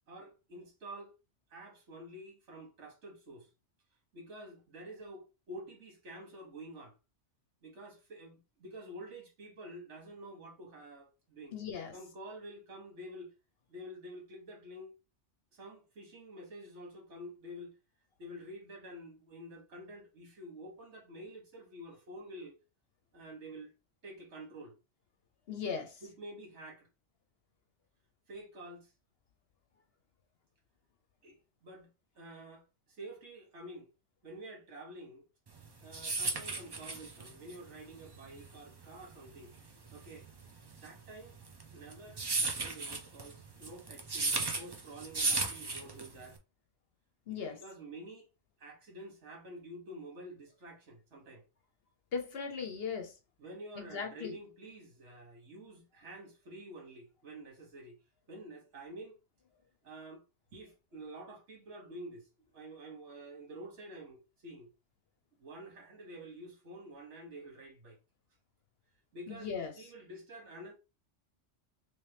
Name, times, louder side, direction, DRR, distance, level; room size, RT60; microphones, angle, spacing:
voice 1, 0.1-1.1 1.5-3.5 4.1-7.0 7.6-11.5 11.9-13.3 13.7-14.9 15.5-17.8 18.2-22.6 23.1-23.7 24.0-24.8 26.0-26.9 28.3-28.9 31.2-33.9 34.2-35.2 35.8-39.5 39.9-40.3 40.7-41.4 41.7-46.4 47.3-48.3 48.6-51.4 53.4-58.0 58.3-59.2 59.8-60.2 60.5-62.3 62.5-64.7 65.4-68.0 69.1-70.7, right 1 dB, 70° right, 1.4 m, -49 dB
voice 2, 11.5-11.9 25.5-26.0 47.3-47.6 52.1-53.1 53.8-54.3 69.3-69.7, left 6 dB, 60° left, 0.9 m, -38 dB
sound 1, 35.6-46.4, right 3 dB, 35° right, 0.4 m, -35 dB
3.3 x 2.9 x 3.3 m
omnidirectional pair, 1.2 m